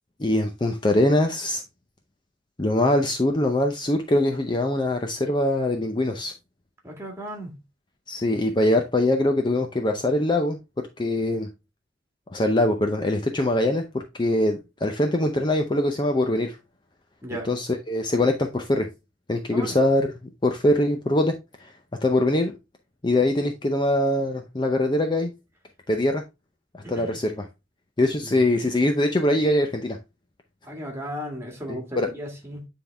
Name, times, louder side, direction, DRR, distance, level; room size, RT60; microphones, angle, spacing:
voice 1, 0.2-1.6 2.6-6.3 8.1-10.6 11.0-11.5 12.3-16.6 17.4-18.9 19.3-20.1 20.4-21.4 22.0-22.5 23.0-25.3 25.9-26.2 26.9-27.5 28.0-30.0 31.7-32.1, left 1 dB, 25° left, 0.6 m, -23 dB
voice 2, 6.8-7.6 17.2-17.5 19.5-19.8 26.8-27.2 28.2-28.4 30.6-32.7, equal, 15° right, 2.0 m, -35 dB
9.3 x 3.6 x 3.4 m
head